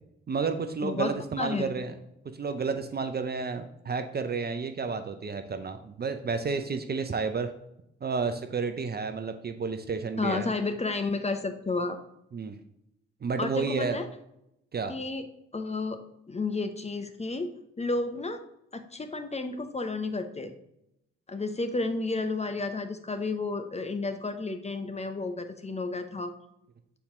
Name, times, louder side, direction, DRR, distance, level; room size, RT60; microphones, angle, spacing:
voice 1, 0.3-1.9 2.2-7.5 8.0-10.5 12.3-12.6 13.2-14.0 14.7-14.9, right 5 dB, 30° right, 8 dB, 0.7 m, -31 dB
voice 2, 0.8-1.8 10.2-12.0 13.4-14.1 14.9-15.3 15.5-16.0 16.3-17.5 17.8-18.4 18.7-20.5 21.3-26.3, left 3 dB, 20° left, 7 dB, 0.9 m, -31 dB
7.0 x 4.4 x 3.7 m, 0.82 s
hypercardioid pair, 40°, 30 cm